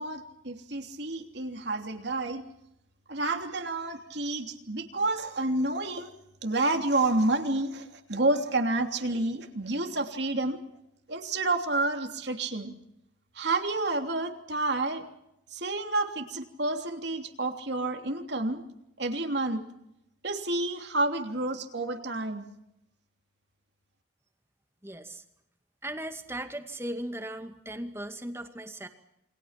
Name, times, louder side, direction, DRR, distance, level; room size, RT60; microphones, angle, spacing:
voice 1, 0.0-2.4 3.1-6.1 6.4-10.6 11.1-12.7 13.3-15.1 15.5-18.6 19.0-19.6 20.2-22.5, right 2 dB, 60° right, 4 dB, 3.2 m, -29 dB
voice 2, 24.8-25.2 25.8-28.9, right 1 dB, 15° right, 6 dB, 2.2 m, -37 dB
29.0 x 24.5 x 5.9 m, 0.82 s
head